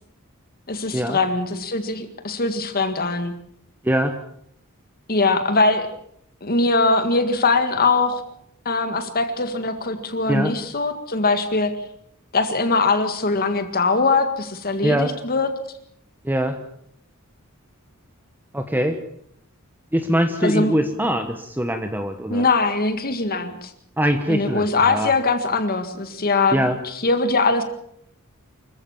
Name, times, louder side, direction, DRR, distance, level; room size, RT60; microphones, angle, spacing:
voice 1, 0.7-3.3 5.1-5.9 6.4-8.2 8.7-11.7 12.3-15.5 20.4-20.7 22.3-23.7 24.3-27.6, left 3 dB, 45° left, 8 dB, 1.9 m, -21 dB
voice 2, 3.8-4.2 10.3-10.5 14.8-15.1 16.2-16.6 18.5-19.0 19.9-22.4 24.0-25.1 26.5-26.8, equal, 10° right, 7 dB, 1.2 m, -22 dB
25.5 x 15.0 x 7.2 m, 0.71 s
head